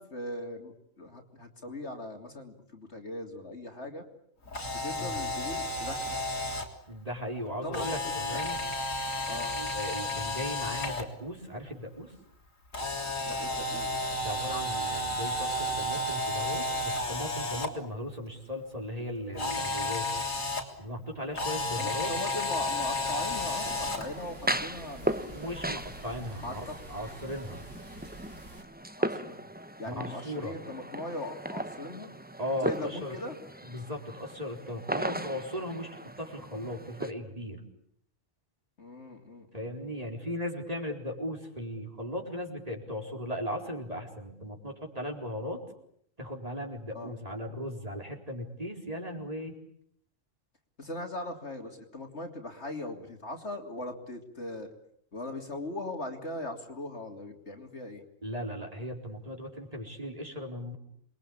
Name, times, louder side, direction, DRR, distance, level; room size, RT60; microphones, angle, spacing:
voice 1, 0.0-4.0 4.7-6.2 7.6-8.4 9.3-9.5 13.2-14.0 21.7-25.5 26.4-26.8 29.0-29.4 29.8-32.1 32.6-33.4 38.8-39.9 46.9-47.1 50.8-54.7 55.1-58.0, left 1 dB, 55° left, 3 dB, 3.4 m, -39 dB
Camera, 4.4-6.6 7.7-11.0 12.7-17.7 19.3-20.6 21.3-24.0, left 2 dB, 90° left, 4.1 m, -32 dB
voice 2, 6.9-8.6 9.5-12.1 14.2-20.0 20.8-22.1 24.5-24.6 25.3-27.6 29.8-30.5 32.4-33.1 33.6-37.6 39.5-45.6 46.2-49.5 58.2-60.8, equal, 30° right, 1 dB, 4.5 m, -37 dB
sound 1, 21.7-37.1, right 1 dB, 10° right, 0.9 m, -38 dB
sound 2, 22.8-28.6, right 1 dB, 65° right, 4.6 m, -49 dB
28.0 x 22.5 x 8.8 m, 0.69 s
omnidirectional pair, 1.3 m